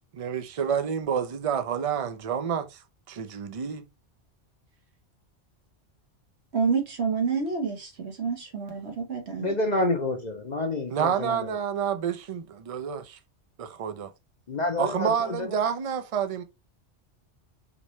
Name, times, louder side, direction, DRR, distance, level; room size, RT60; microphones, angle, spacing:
voice 1, 0.1-2.8 3.1-3.8 10.9-13.2 13.6-14.1 14.8-16.4, right 8 dB, 40° right, 0.6 m, -29 dB
voice 2, 6.5-9.6, right 5 dB, 75° right, 1.4 m, -28 dB
voice 3, 9.4-11.5 14.5-15.5, left 2 dB, 45° left, 0.8 m, -28 dB
5.0 x 3.1 x 3.1 m
omnidirectional pair, 1.1 m